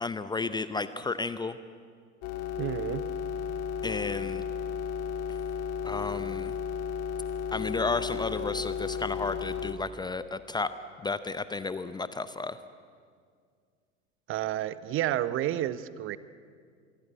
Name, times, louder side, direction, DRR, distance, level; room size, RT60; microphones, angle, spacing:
voice 1, 0.0-1.6 3.8-4.4 5.8-6.5 7.5-10.7 11.0-12.6, left 3 dB, 10° left, 13 dB, 0.7 m, -32 dB
sound 1, 2.2-9.7, left 7 dB, 40° left, 2.5 m, -34 dB
voice 2, 2.6-3.1 14.3-16.2, right 12 dB, 35° right, 16 dB, 0.9 m, -30 dB
26.0 x 22.0 x 8.0 m, 2.1 s
figure-of-eight pair, 85°, 37 cm